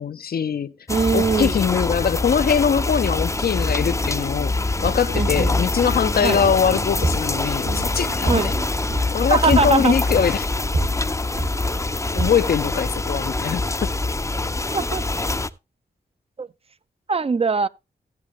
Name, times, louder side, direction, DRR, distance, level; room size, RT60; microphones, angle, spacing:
voice 1, 0.0-0.7 1.1-4.6 4.8-8.5 9.1-10.5 12.1-13.9, left 7 dB, 65° left, 0.5 m, -22 dB
sound 1, 0.9-15.5, left 2 dB, 20° left, 0.5 m, -25 dB
voice 2, 0.9-1.6 5.1-5.5 6.2-6.4 8.3-8.5 9.3-9.9 14.7-15.0 16.4-16.5 17.1-17.7, right 5 dB, 35° right, 0.5 m, -21 dB
sound 2, 3.3-8.7, right 7 dB, 80° right, 0.6 m, -40 dB
sound 3, 4.8-13.4, right 2 dB, 65° right, 2.7 m, -30 dB
16.0 x 7.5 x 3.0 m
cardioid pair, 60°, 17 cm